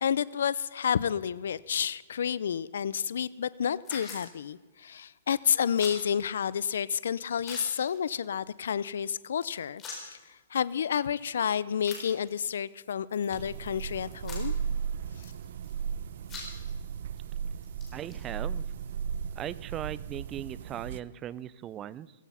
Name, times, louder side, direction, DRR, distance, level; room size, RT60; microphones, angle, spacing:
voice 1, 0.0-10.2 10.5-14.5, left 8 dB, 75° left, 20 dB, 0.5 m, -30 dB
sound 1, 3.0-3.1 3.8-4.3 5.8-6.0 6.5-6.6 6.8-6.9 7.4-8.1 8.4-8.5 8.9-9.0 9.4-10.2 10.9-11.0 11.8-12.5 13.1-13.8 14.1-14.7 15.2-15.9 16.2-16.8 17.2-17.3 17.6-19.6, left 4 dB, 20° left, 4.3 m, -44 dB
sound 2, 13.3-21.0, right 7 dB, 60° right, 0.7 m, -36 dB
voice 2, 17.9-18.7 19.4-22.1, right 11 dB, 20° right, 19 dB, 0.5 m, -38 dB
16.0 x 15.5 x 5.7 m, 1.3 s
hypercardioid pair, 155°, 0 cm